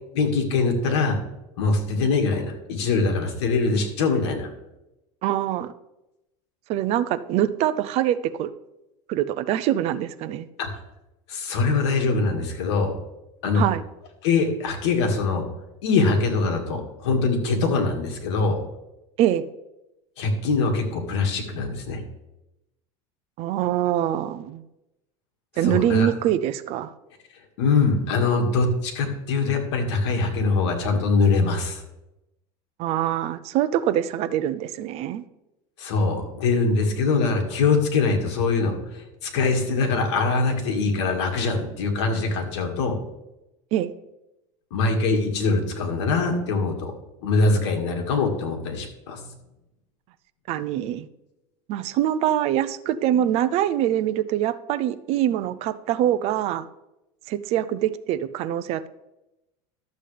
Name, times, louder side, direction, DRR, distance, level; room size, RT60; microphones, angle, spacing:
voice 1, 0.1-1.2 1.6-4.5 10.6-10.7 11.3-12.9 13.4-13.6 14.2-15.5 15.8-18.6 20.2-22.0 25.6-26.1 27.6-31.8 35.8-39.0 39.3-42.9 44.7-46.9 47.2-49.2, left 4 dB, 85° left, 3 dB, 2.1 m, -23 dB
voice 2, 5.2-5.7 6.7-8.5 9.1-10.5 13.5-13.8 19.2-19.4 23.4-24.6 25.6-26.9 32.8-35.2 43.7-43.9 50.5-51.1 51.7-56.7 57.3-58.9, right 11 dB, 45° right, 14 dB, 0.6 m, -24 dB
12.5 x 7.4 x 3.4 m, 0.93 s
supercardioid pair, 145°, 14 cm